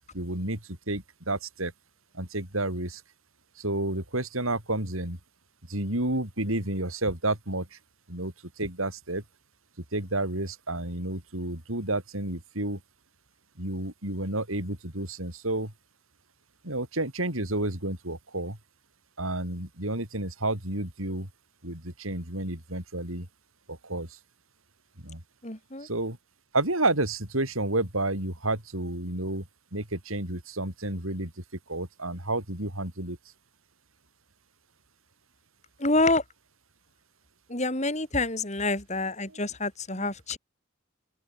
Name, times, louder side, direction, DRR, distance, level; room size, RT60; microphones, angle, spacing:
voice 1, 0.1-0.6 0.9-1.7 2.1-3.0 3.6-5.2 5.7-7.8 8.1-9.2 9.9-12.8 13.6-15.7 16.6-18.6 19.2-21.3 21.6-23.3 23.7-24.2 25.0-25.2 25.8-26.2 26.5-29.5 29.7-31.3 31.7-33.2, right 2 dB, 80° right, 6.1 m, -30 dB
voice 2, 25.4-25.9 35.8-36.2 37.5-40.4, left 2 dB, 35° left, 5.2 m, -27 dB
open air
head